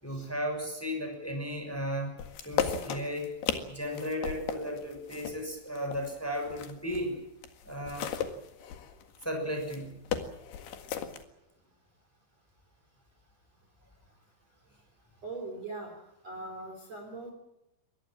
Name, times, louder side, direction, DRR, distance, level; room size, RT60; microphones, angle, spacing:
voice 1, 0.0-2.1 2.4-3.3 3.7-7.2 7.6-8.1 9.2-10.0, equal, 5° left, 4 dB, 5.6 m, -35 dB
sound 1, 2.2-7.1 7.4-11.2, left 8 dB, 60° left, 3.5 m, -36 dB
voice 2, 15.2-15.9 16.2-17.3, right 3 dB, 35° right, 2 dB, 4.3 m, -40 dB
25.0 x 20.0 x 7.5 m, 0.87 s
omnidirectional pair, 5.6 m